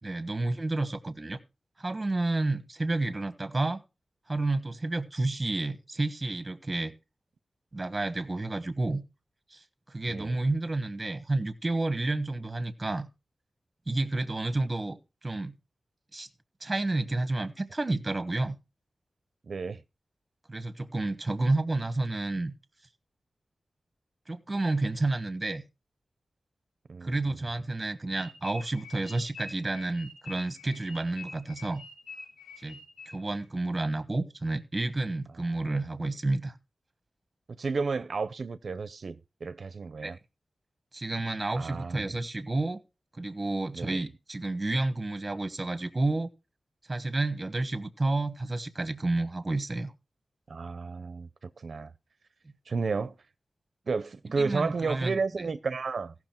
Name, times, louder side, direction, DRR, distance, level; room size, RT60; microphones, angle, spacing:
voice 1, 0.0-1.4 1.8-3.8 4.3-6.9 7.7-9.0 9.5-13.1 13.9-15.0 15.2-15.5 16.1-16.3 16.6-18.6 20.5-22.5 24.3-25.6 27.0-31.8 32.6-32.8 33.0-36.5 40.0-40.1 40.9-42.8 43.1-46.3 46.9-49.9 54.4-55.5, right 2 dB, 25° right, 1.3 m, -30 dB
voice 2, 19.5-19.8 26.9-27.2 37.5-40.2 41.5-42.1 43.7-44.0 50.5-51.9 52.7-53.1 53.9-56.1, right 4 dB, 65° right, 0.6 m, -32 dB
sound 1, 28.1-33.4, left 4 dB, 90° left, 2.2 m, -46 dB
17.5 x 6.1 x 4.5 m
wide cardioid pair, 125°, 0 cm